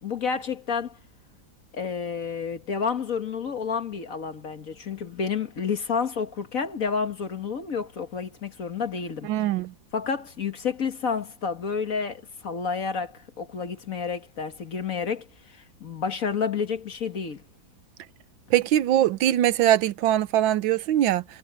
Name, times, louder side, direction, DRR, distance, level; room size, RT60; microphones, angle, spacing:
voice 1, 0.0-1.0 1.7-9.3 9.9-17.4, left 6 dB, 45° left, 1.8 m, -30 dB
voice 2, 9.2-9.7 18.5-21.2, right 12 dB, 85° right, 1.5 m, -22 dB
omnidirectional pair, 2.1 m